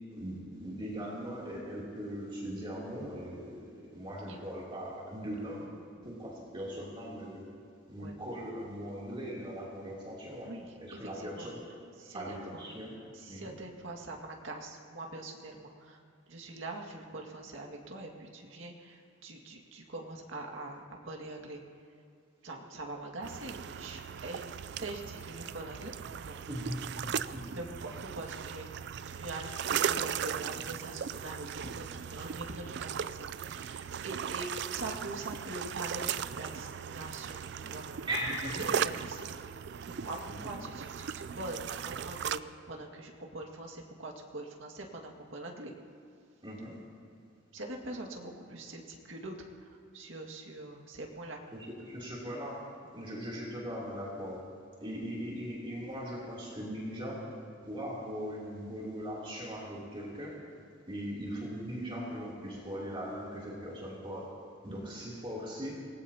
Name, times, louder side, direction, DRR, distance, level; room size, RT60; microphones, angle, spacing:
voice 1, 0.1-5.7 6.0-7.5 7.9-10.5 10.8-11.6 12.1-13.0 13.3-13.6 26.5-27.5 38.0-38.8 40.3-40.6 46.4-46.8 51.5-54.5 54.8-57.2 57.6-60.4 60.9-64.3 64.6-65.7, equal, 25° right, -5 dB, 3.1 m, -39 dB
voice 2, 10.3-11.5 12.0-12.7 13.1-16.0 16.3-21.6 22.4-24.4 24.8-26.4 27.5-38.1 38.8-39.4 39.8-45.7 47.5-51.4 64.9-65.0, right 2 dB, 85° right, 1 dB, 2.0 m, -43 dB
sound 1, 23.2-42.4, right 8 dB, 60° right, 0.4 m, -37 dB
25.5 x 19.5 x 2.9 m, 2.4 s
head